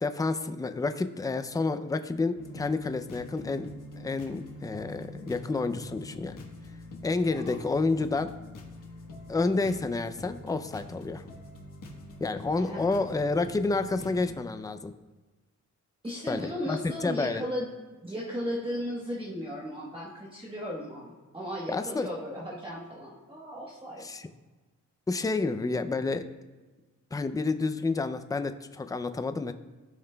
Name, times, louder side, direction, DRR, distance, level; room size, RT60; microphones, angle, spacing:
voice 1, 0.0-6.4 7.0-8.3 9.3-11.2 12.2-14.9 16.3-17.4 21.7-22.1 24.0-24.3 25.1-26.3 27.1-29.5, left 3 dB, 10° left, 10 dB, 0.4 m, -29 dB
sound 1, 2.4-14.4, left 1 dB, 90° left, 1.3 m, -45 dB
voice 2, 12.6-13.0 16.0-17.7 18.0-24.0, equal, 15° right, -5 dB, 1.1 m, -36 dB
15.0 x 5.8 x 2.2 m, 1.3 s
wide cardioid pair, 135°, 31 cm